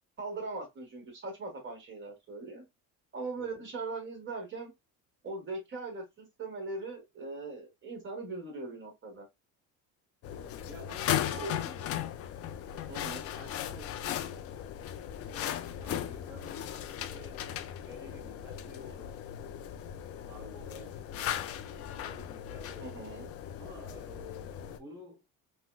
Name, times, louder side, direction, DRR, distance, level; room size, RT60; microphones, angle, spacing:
voice 1, 0.2-2.6 3.1-4.7 5.2-9.3 11.3-11.8 12.9-13.2 22.8-23.3, right 3 dB, 35° right, 1.4 m, -40 dB
sound 1, 10.2-24.8, left 10 dB, 45° left, 0.4 m, -37 dB
voice 2, 10.2-11.8 13.2-14.5 15.2-19.2 20.2-22.9 23.6-25.2, left 2 dB, 10° right, 1.3 m, -51 dB
4.0 x 2.1 x 2.3 m
cardioid pair, 125°, 33 cm